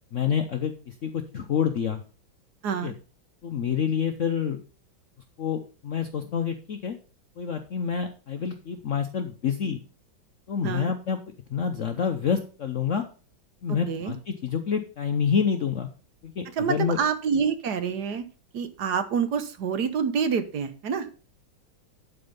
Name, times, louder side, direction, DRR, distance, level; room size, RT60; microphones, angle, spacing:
voice 1, 0.1-2.0 2.8-2.9 3.4-4.6 5.4-7.0 7.4-9.8 10.5-13.0 13.6-15.9 16.2-17.0, left 7 dB, 60° left, 6 dB, 0.8 m, -28 dB
voice 2, 2.6-2.9 10.6-10.9 13.9-14.1 16.4-18.2 18.5-21.1, right 6 dB, 60° right, 10 dB, 1.3 m, -27 dB
11.5 x 4.4 x 5.3 m, 0.36 s
omnidirectional pair, 2.1 m